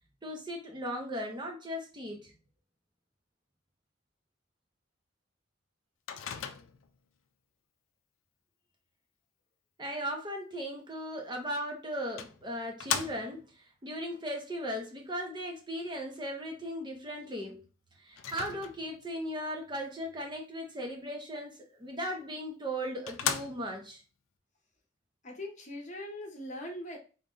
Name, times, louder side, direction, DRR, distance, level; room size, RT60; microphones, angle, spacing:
voice 1, 0.2-2.3 9.8-17.6 18.0-24.0, equal, 20° right, 2 dB, 0.6 m, -37 dB
Microwave oven, 6.1-7.0 11.3-11.4 12.2-13.5 18.2-19.1 22.2-22.3 22.7-22.8 23.1-23.9, left 8 dB, 90° left, 0.4 m, -36 dB
voice 2, 25.2-27.0, left 1 dB, 35° left, 1 dB, 0.8 m, -41 dB
3.8 x 2.2 x 3.7 m, 0.35 s
head